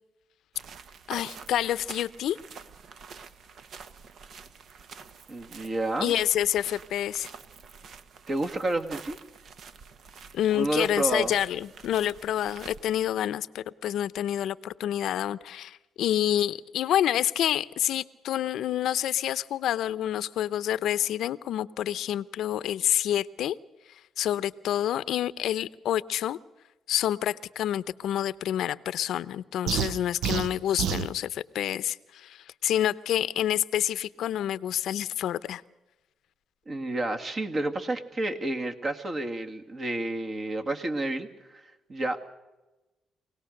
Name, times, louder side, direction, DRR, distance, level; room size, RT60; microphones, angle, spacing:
sound 1, 0.5-13.1, right 6 dB, 65° right, 1.2 m, -47 dB
voice 1, 1.1-2.4 6.0-7.3 10.3-23.6 24.2-26.4 26.9-35.6, left 11 dB, 75° left, 17 dB, 0.7 m, -28 dB
voice 2, 5.3-6.1 8.3-9.2 10.5-11.3 36.7-41.6 41.9-42.3, right 2 dB, 40° right, 5 dB, 2.1 m, -30 dB
sound 2, 29.7-31.1, right 9 dB, 80° right, 0.7 m, -29 dB
24.0 x 18.0 x 6.6 m, 1.1 s
cardioid pair, 90°, 0 cm